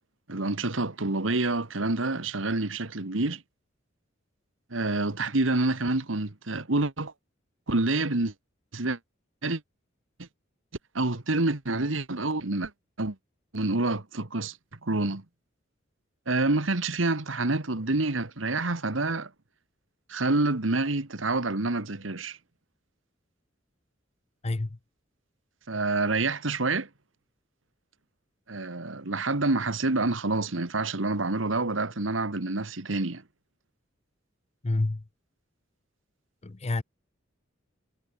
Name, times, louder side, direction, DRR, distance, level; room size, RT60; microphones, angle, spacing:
voice 1, 0.3-3.4 4.7-7.1 7.7-8.3 8.7-9.0 9.4-9.6 10.2-10.3 11.0-12.7 13.0-13.2 13.5-14.6 14.8-15.2 16.3-19.3 20.1-22.4 25.7-26.9 28.5-33.2, right 2 dB, 80° right, 1.7 m, -27 dB
voice 2, 24.4-24.8 34.6-35.0 36.4-36.8, left 2 dB, 35° left, 0.7 m, -28 dB
head